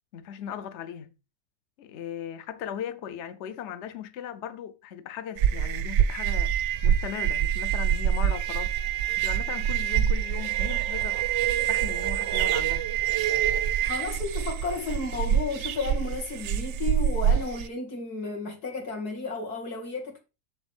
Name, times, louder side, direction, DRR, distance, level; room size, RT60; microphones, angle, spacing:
voice 1, 0.1-1.1 1.8-6.5 6.8-8.7 9.2-11.2 11.7-12.9, left 9 dB, 60° left, 0.8 m, -38 dB
sound 1, 5.4-17.7, right 10 dB, 65° right, 0.7 m, -26 dB
voice 2, 13.8-20.2, left 3 dB, 75° left, 2.5 m, -33 dB
7.2 x 7.0 x 3.4 m
omnidirectional pair, 1.7 m